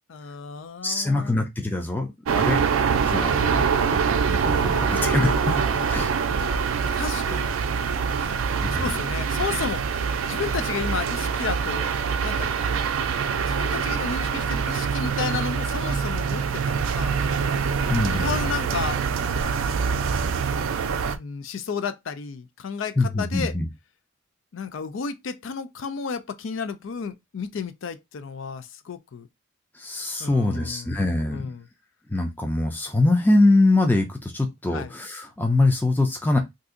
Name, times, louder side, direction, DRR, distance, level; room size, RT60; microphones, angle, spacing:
voice 1, 0.1-1.4 4.6-5.9 6.9-7.5 8.2-8.4 8.8-9.8 10.3-11.9 12.2-12.5 13.4-17.2 18.1-19.7 21.1-23.5 24.5-29.3 30.2-31.0 31.3-31.6 34.7-34.9, left 5 dB, 70° left, 0.4 m, -33 dB
voice 2, 0.8-2.6 3.0-3.6 3.9-5.3 5.9-6.1 8.6-9.0 17.9-18.5 23.0-23.7 29.7-31.5 32.1-36.4, left 2 dB, 10° left, 0.4 m, -23 dB
sound 1, 2.3-21.2, right 6 dB, 90° right, 0.4 m, -24 dB
2.7 x 2.4 x 3.6 m
head